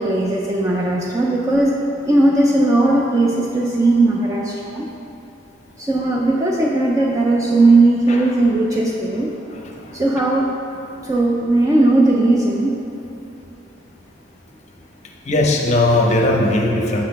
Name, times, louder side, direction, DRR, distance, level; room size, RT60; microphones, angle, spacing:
voice 1, 0.0-1.7 2.1-4.9 5.8-9.3 9.9-10.5 11.0-12.8, right 2 dB, 15° right, -2 dB, 0.4 m, -17 dB
voice 2, 15.3-17.0, left 1 dB, 35° left, 0 dB, 0.6 m, -18 dB
6.3 x 4.1 x 5.2 m, 2.8 s
head